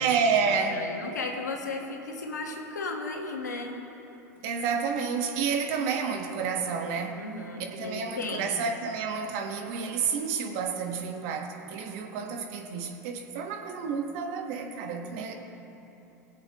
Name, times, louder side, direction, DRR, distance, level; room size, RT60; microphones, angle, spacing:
voice 1, 0.0-0.8 4.4-7.2 7.6-15.3, right 5 dB, 60° right, 3 dB, 1.4 m, -30 dB
voice 2, 0.5-3.7 7.1-8.6, left 3 dB, 90° left, 1 dB, 1.5 m, -35 dB
21.0 x 7.7 x 3.1 m, 3.0 s
hypercardioid pair, 90°, 9 cm